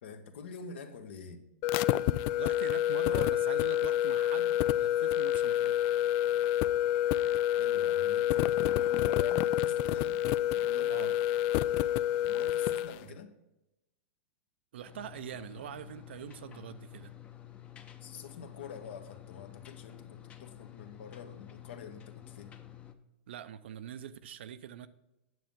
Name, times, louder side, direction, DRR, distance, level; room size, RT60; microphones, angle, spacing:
voice 1, 0.0-1.4 7.6-10.2 10.5-11.2 12.2-13.3 18.0-22.5, left 6 dB, 75° left, 1.3 m, -46 dB
sound 1, 1.6-13.0, left 12 dB, 45° left, 0.3 m, -28 dB
voice 2, 2.4-5.9 10.9-11.2 14.7-17.1 23.3-24.9, right 9 dB, 75° right, 0.6 m, -44 dB
sound 2, 14.8-22.9, left 12 dB, 20° left, 0.7 m, -50 dB
9.2 x 7.6 x 3.7 m
hypercardioid pair, 140°, 6 cm